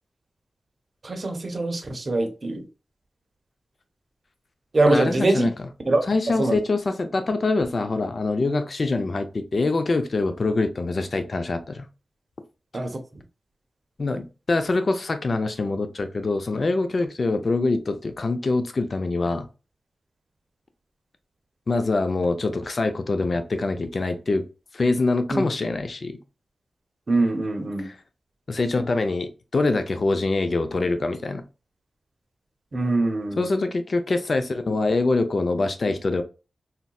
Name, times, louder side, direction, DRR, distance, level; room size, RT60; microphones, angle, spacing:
voice 1, 1.0-2.6 4.7-5.5 5.9-6.1 6.4-6.6 12.7-13.0 25.3-25.4 27.1-27.9 32.7-33.4, right 2 dB, 50° right, 0.7 m, -23 dB
voice 2, 4.9-5.5 6.1-11.9 14.0-19.5 21.7-24.4 24.7-26.2 27.8-28.0 28.5-31.4 33.4-36.2, left 3 dB, 55° left, 0.5 m, -24 dB
3.9 x 2.1 x 2.3 m
cardioid pair, 55°, 0 cm